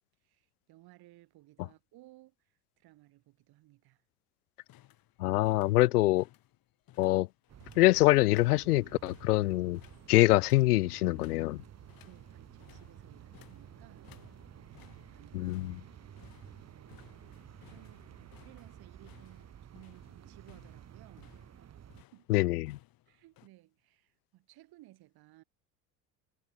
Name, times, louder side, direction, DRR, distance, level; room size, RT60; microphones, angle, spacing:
voice 1, 0.2-4.0 12.0-15.6 16.2-17.4 17.7-21.3 21.6-21.9 22.1-22.5 23.1-25.4, right 17 dB, 50° right, 5.2 m, -59 dB
sound 1, 4.6-23.5, left 14 dB, 45° left, 6.0 m, -62 dB
voice 2, 5.2-6.2 7.0-7.3 7.8-9.8 10.1-11.6 15.3-15.7 22.3-22.7, left 18 dB, 70° left, 0.5 m, -24 dB
sound 2, 7.5-22.0, right 9 dB, 30° right, 2.6 m, -52 dB
sound 3, 8.4-18.5, right 4 dB, 85° right, 4.5 m, -64 dB
figure-of-eight pair, 65°, 48 cm